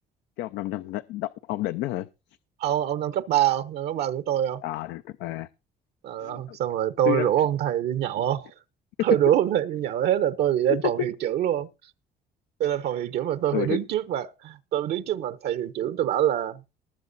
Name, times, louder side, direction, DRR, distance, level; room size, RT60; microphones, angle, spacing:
voice 1, 0.4-2.1 4.6-5.5 6.2-6.6 7.1-7.5 9.0-9.1 10.8-11.1 13.5-13.8, left 14 dB, 90° left, 0.6 m, -30 dB
voice 2, 2.6-4.6 6.0-8.5 9.0-11.7 12.6-16.6, right 11 dB, 75° right, 1.0 m, -25 dB
19.5 x 7.0 x 4.1 m
cardioid pair, 110°, 17 cm